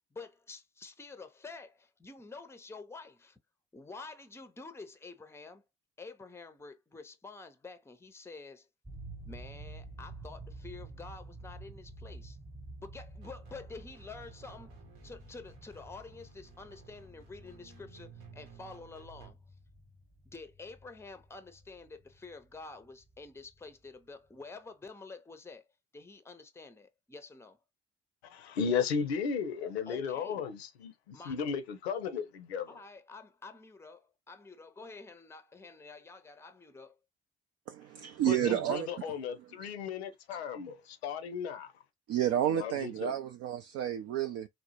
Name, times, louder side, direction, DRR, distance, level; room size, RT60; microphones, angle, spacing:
voice 1, 0.1-3.4 3.7-5.6 6.0-8.7 9.2-12.4 12.8-14.7 15.0-19.4 20.2-25.6 25.9-27.6 29.9-30.4 31.1-31.3 32.7-37.0, left 3 dB, 10° left, 0.6 m, -48 dB
sound 1, 8.9-23.7, right 2 dB, 15° right, 1.0 m, -50 dB
sound 2, 13.2-19.3, right 7 dB, 70° right, 0.8 m, -56 dB
voice 2, 28.2-32.8 38.3-41.7 42.5-43.1, left 6 dB, 75° left, 0.6 m, -35 dB
voice 3, 37.7-39.0 42.1-44.5, right 11 dB, 50° right, 0.5 m, -31 dB
4.1 x 2.0 x 2.8 m
figure-of-eight pair, 45°, 32 cm